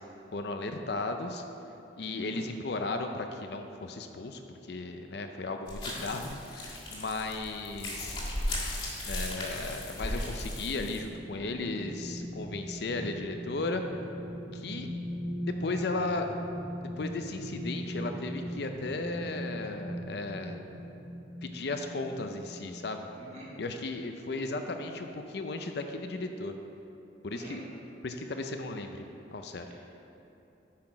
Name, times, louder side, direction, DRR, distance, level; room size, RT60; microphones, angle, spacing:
voice 1, 0.3-1.4 2.0-8.2 9.0-13.8 14.5-14.9 15.4-16.3 16.8-20.6 21.4-23.1 23.6-26.5 27.2-27.6 28.0-29.7, left 2 dB, 60° left, 6 dB, 0.5 m, -35 dB
sound 1, 5.7-11.0, left 1 dB, 30° left, 1.7 m, -36 dB
sound 2, 10.4-22.8 23.2-23.4, equal, 75° right, 1.7 m, -40 dB
voice 2, 23.1-23.5 27.3-27.6, right 1 dB, 35° right, -6 dB, 2.0 m, -47 dB
8.6 x 5.9 x 4.9 m, 2.8 s
head